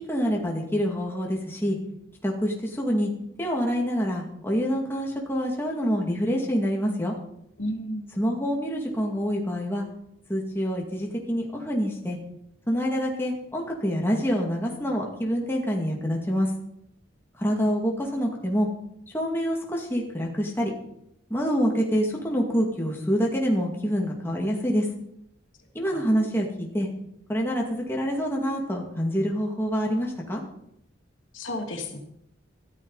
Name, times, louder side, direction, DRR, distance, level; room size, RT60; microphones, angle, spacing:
voice 1, 0.0-1.8 2.2-3.1 3.4-7.1 8.2-9.8 10.3-12.2 12.7-16.5 17.4-18.7 19.1-20.7 21.3-24.9 25.7-26.9 27.3-30.4, equal, 10° left, -1 dB, 2.2 m, -26 dB
voice 2, 7.6-8.1 25.9-26.0 31.3-32.0, left 1 dB, 85° left, 2 dB, 2.5 m, -32 dB
13.5 x 13.5 x 4.1 m, 0.76 s
head